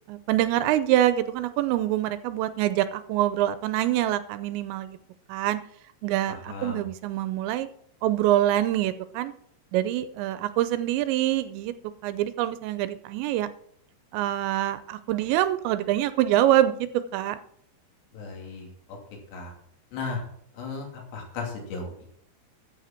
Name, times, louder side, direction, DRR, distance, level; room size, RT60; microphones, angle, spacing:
voice 1, 0.1-5.0 5.3-5.6 6.0-7.7 8.0-9.3 9.7-11.7 12.0-13.5 14.1-17.4, right 13 dB, 85° right, 13 dB, 2.8 m, -25 dB
voice 2, 6.3-6.8 18.1-18.7 19.3-19.5 19.9-20.2 20.5-22.1, left 4 dB, 70° left, 1 dB, 4.6 m, -35 dB
14.0 x 8.0 x 4.4 m, 0.67 s
omnidirectional pair, 5.2 m